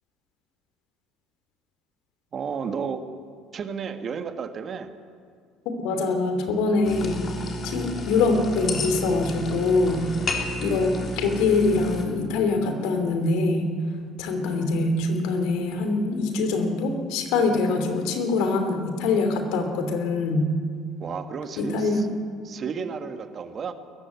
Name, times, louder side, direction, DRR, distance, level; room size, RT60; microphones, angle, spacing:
voice 1, 2.3-3.1 3.5-4.9 21.0-22.1 22.4-23.7, right 6 dB, 40° right, 9 dB, 1.5 m, -32 dB
voice 2, 5.8-7.2 7.6-10.1 10.6-13.7 14.2-20.5 21.6-22.0, left 3 dB, 60° left, 6 dB, 2.9 m, -24 dB
sound 1, 6.8-12.0, left 1 dB, 35° left, 3.3 m, -32 dB
20.0 x 15.0 x 9.6 m, 2.2 s
figure-of-eight pair, 60°, 0 cm